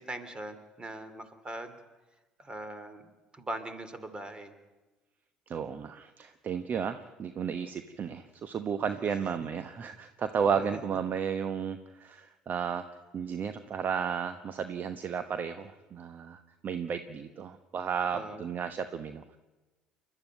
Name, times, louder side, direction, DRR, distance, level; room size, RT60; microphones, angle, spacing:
voice 1, 0.0-1.8 2.4-4.5 10.6-10.7 18.1-18.5, right 1 dB, 20° right, 10 dB, 3.0 m, -41 dB
voice 2, 5.5-19.4, right 7 dB, 40° right, 10 dB, 1.1 m, -33 dB
29.0 x 12.0 x 9.3 m, 1.2 s
figure-of-eight pair, 60°, 5 cm